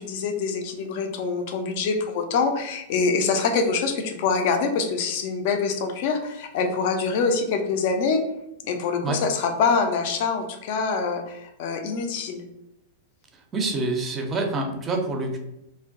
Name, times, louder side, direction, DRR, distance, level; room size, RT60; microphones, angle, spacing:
voice 1, 0.0-8.2 8.7-12.4, left 4 dB, 45° left, 5 dB, 0.4 m, -25 dB
voice 2, 13.5-15.4, right 2 dB, 20° right, 3 dB, 0.4 m, -26 dB
2.5 x 2.1 x 2.4 m, 0.84 s
figure-of-eight pair, 95°, 0 cm